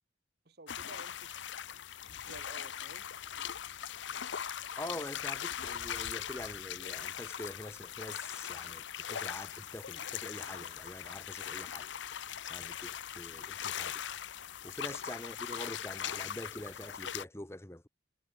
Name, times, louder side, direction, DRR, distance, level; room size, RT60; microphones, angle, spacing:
voice 1, 0.4-1.4 2.1-3.0 4.8-5.1, right 2 dB, 55° right, 1.6 m, -53 dB
sound 1, 0.7-17.2, left 9 dB, 70° left, 0.7 m, -40 dB
voice 2, 4.8-11.9 12.5-13.9 14.6-17.9, left 1 dB, 15° left, 1.0 m, -45 dB
head